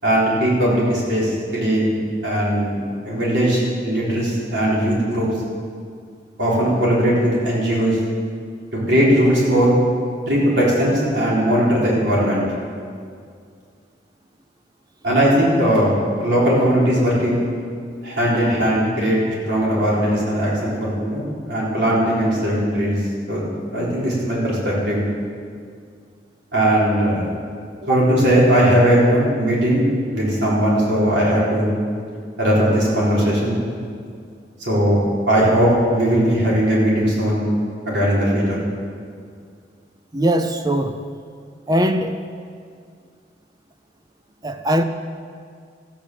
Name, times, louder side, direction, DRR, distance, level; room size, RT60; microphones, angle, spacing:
voice 1, 0.0-2.0 2.2-2.8 3.0-5.3 6.4-8.0 8.9-9.7 10.3-12.4 15.0-17.5 18.0-19.2 19.4-23.0 23.3-23.4 23.7-25.1 26.5-27.4 27.9-31.7 32.4-33.6 34.6-37.4 37.9-38.6, equal, 70° right, -6 dB, 4.1 m, -18 dB
voice 2, 40.1-41.0 41.7-42.2 44.4-44.8, right 1 dB, 20° right, 7 dB, 0.6 m, -20 dB
14.0 x 8.7 x 7.5 m, 2.2 s
head